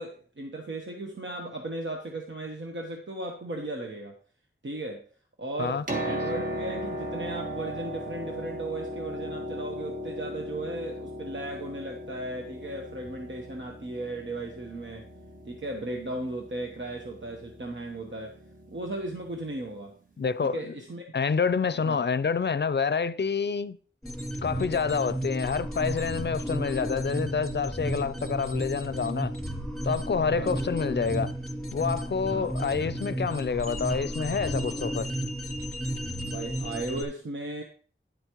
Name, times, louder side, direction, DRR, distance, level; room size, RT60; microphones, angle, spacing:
voice 1, 0.0-4.1 4.6-5.0 5.4-15.1 15.5-18.4 18.7-19.9 20.4-21.0 21.8-22.1 30.3-30.6 32.3-32.5 36.2-37.6, right 2 dB, 65° right, 1.1 m, -36 dB
Piano, 5.6-19.4 20.4-20.5, equal, 40° right, 1.6 m, -37 dB
voice 2, 20.2-20.8 21.1-23.8 24.4-29.3 29.8-31.3 31.7-35.1, left 5 dB, 60° left, 0.5 m, -28 dB
sound 1, 24.0-37.0, right 1 dB, ahead, 3.1 m, -33 dB
10.5 x 8.1 x 3.0 m
wide cardioid pair, 70°, 20 cm